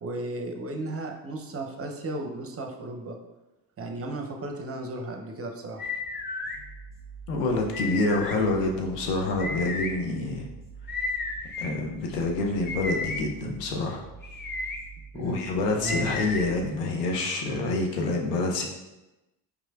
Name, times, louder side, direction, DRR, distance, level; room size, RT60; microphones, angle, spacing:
voice 1, 0.0-3.2 3.8-5.9 15.1-15.4 15.8-16.1, right 1 dB, 30° right, 3 dB, 0.6 m, -35 dB
sound 1, 5.8-6.6 7.7-8.4 9.4-9.9 10.9-11.7 12.6-13.2 14.2-14.8 15.8-16.4, left 3 dB, 25° left, 0.5 m, -32 dB
sound 2, 6.4-16.6, right 5 dB, 70° left, 1.5 m, -46 dB
voice 2, 7.3-10.5 11.6-14.0 15.1-18.7, left 2 dB, 85° left, 1 dB, 0.7 m, -27 dB
4.9 x 3.1 x 2.3 m, 1.0 s
hypercardioid pair, 50°, 47 cm